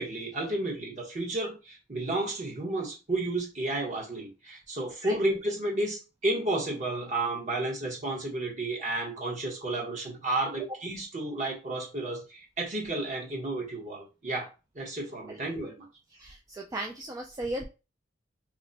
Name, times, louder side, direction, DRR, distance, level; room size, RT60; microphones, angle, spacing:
voice 1, 0.0-14.5 14.7-15.9, right 2 dB, 40° right, -1 dB, 1.1 m, -32 dB
voice 2, 16.1-17.6, right 1 dB, 20° right, 0 dB, 0.3 m, -36 dB
3.0 x 2.1 x 3.9 m, 0.30 s
head